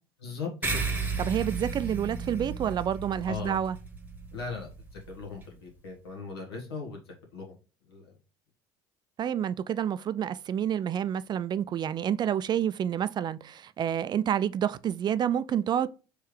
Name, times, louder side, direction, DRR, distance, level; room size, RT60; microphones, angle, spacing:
voice 1, 0.2-0.8 3.3-3.6 4.3-7.4 7.9-8.1, left 4 dB, 85° left, 1.4 m, -39 dB
sound 1, 0.6-5.5, right 4 dB, 15° right, 1.0 m, -34 dB
voice 2, 1.2-3.8 9.2-15.9, right 9 dB, 35° right, 0.3 m, -29 dB
4.6 x 3.2 x 3.1 m
hypercardioid pair, 65°, 13 cm